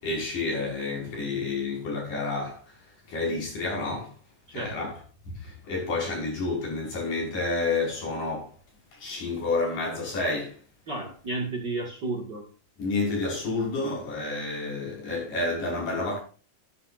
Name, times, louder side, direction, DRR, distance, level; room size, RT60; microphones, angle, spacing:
voice 1, 0.0-2.8 3.1-4.1 4.5-5.0 5.4-8.5 8.9-10.6 12.8-16.2, left 3 dB, 70° left, 7.3 m, -29 dB
voice 2, 4.5-4.9 10.9-12.5, right 2 dB, 35° right, 2.3 m, -32 dB
13.0 x 12.5 x 2.6 m
omnidirectional pair, 4.0 m